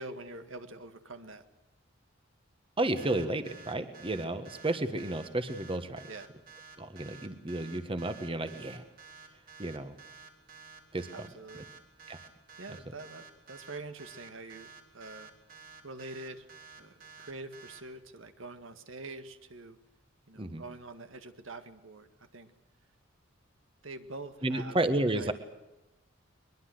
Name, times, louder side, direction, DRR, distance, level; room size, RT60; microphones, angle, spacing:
voice 1, 0.0-1.4 6.1-6.3 11.1-11.7 12.6-15.3 15.8-16.5 16.8-19.8 20.3-22.1 22.3-22.5 23.8-24.8 25.2-25.3, right 2 dB, 80° right, 9 dB, 1.9 m, -45 dB
voice 2, 2.8-6.1 6.8-8.9 9.6-10.0 10.9-11.3 12.1-12.2 20.3-20.6 24.4-25.3, right 1 dB, 25° right, 9 dB, 1.5 m, -32 dB
sound 1, 3.0-17.8, right 5 dB, 50° right, 3.5 m, -51 dB
22.0 x 22.0 x 7.9 m, 0.95 s
head